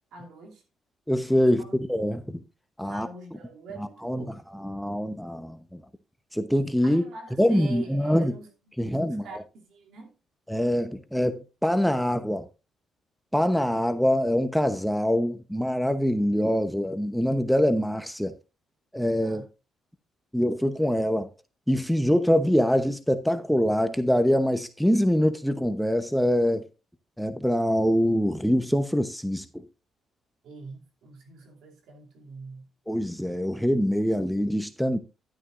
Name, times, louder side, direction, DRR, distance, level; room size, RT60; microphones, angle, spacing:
voice 1, 0.1-0.6 1.6-1.8 2.9-4.4 6.8-8.5 8.9-10.1 19.2-19.4 30.4-32.7, right 3 dB, 80° right, 2.7 m, -44 dB
voice 2, 1.1-2.4 2.8-3.1 3.8-4.2 4.5-5.8 6.3-7.0 7.4-8.3 8.8-9.3 10.5-12.5 13.3-18.4 18.9-19.4 20.3-21.3 21.7-26.6 27.2-29.5 32.9-35.0, equal, ahead, 0.9 m, -24 dB
11.5 x 9.7 x 2.5 m
cardioid pair, 90°, 0 cm